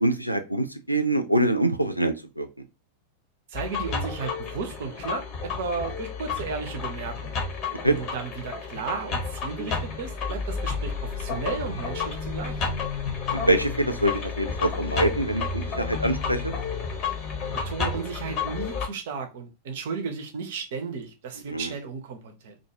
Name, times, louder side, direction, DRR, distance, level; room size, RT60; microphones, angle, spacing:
voice 1, 0.0-2.5 7.8-8.0 13.3-16.5 21.5-21.7, right 1 dB, 90° left, 0.3 m, -24 dB
sound 1, 3.5-18.9, left 5 dB, 35° left, 0.8 m, -31 dB
voice 2, 3.5-7.4 7.8-12.6 17.5-22.6, right 5 dB, 55° right, 0.6 m, -34 dB
sound 2, 9.6-10.6, left 1 dB, ahead, 0.7 m, -45 dB
2.5 x 2.3 x 2.8 m
figure-of-eight pair, 90°, 0 cm